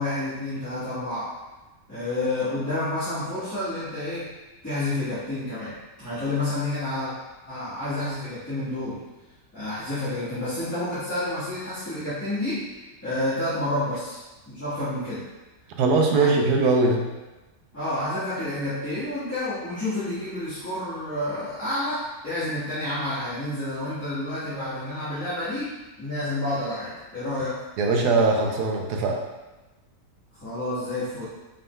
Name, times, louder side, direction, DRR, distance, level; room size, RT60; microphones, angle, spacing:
voice 1, 0.0-1.3 1.9-4.3 4.6-7.1 7.5-9.0 9.5-12.7 13.0-15.3 16.1-16.3 17.7-27.6 30.4-31.2, left 1 dB, 10° left, -15 dB, 1.2 m, -29 dB
voice 2, 15.8-17.0 27.8-29.2, right 3 dB, 85° right, 1 dB, 1.2 m, -21 dB
5.2 x 3.8 x 2.2 m, 1.1 s
omnidirectional pair, 1.7 m